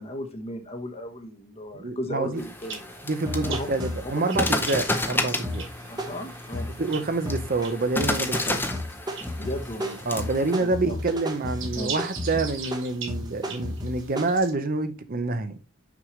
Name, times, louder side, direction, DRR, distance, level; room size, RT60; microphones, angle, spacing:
voice 1, 0.0-2.8 3.4-3.7 4.0-4.6 5.9-6.7 9.4-10.0 10.6-11.0 11.7-12.0, left 1 dB, 30° left, 1.0 m, -35 dB
voice 2, 1.8-2.4 3.1-5.7 6.8-8.6 10.1-15.6, right 3 dB, 40° right, 0.7 m, -27 dB
sound 1, 2.3-14.5, right 6 dB, 60° right, 1.8 m, -42 dB
sound 2, 2.4-10.6, left 2 dB, 10° left, 0.6 m, -31 dB
sound 3, 2.7-2.8 3.2-6.8 7.2-7.7 8.0-14.4, left 1 dB, 20° right, 1.1 m, -34 dB
6.0 x 5.5 x 3.1 m
head